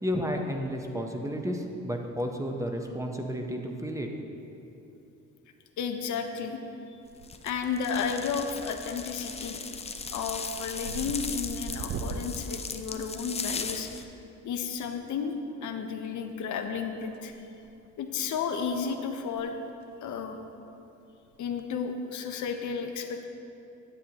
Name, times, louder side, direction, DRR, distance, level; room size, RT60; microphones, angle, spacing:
voice 1, 0.0-4.1, equal, 10° right, 3 dB, 0.7 m, -32 dB
voice 2, 5.8-6.6 7.4-9.6 10.1-14.1 14.4-15.3 15.6-17.3 18.0-19.6 20.0-20.4 21.4-23.3, left 6 dB, 75° left, 5 dB, 0.7 m, -32 dB
sound 1, 7.0-7.6 7.9-8.4 8.8-9.1 9.4-13.8 15.2-15.3 16.6-17.4 17.6-17.9 18.4-18.5 18.7-18.8 19.2-19.4 19.7-19.8 21.3-21.6, right 5 dB, 50° right, 0.5 m, -41 dB
sound 2, 7.2-14.0, left 5 dB, 20° left, 0.4 m, -38 dB
9.8 x 7.6 x 2.9 m, 2.9 s
cardioid pair, 90°, 30 cm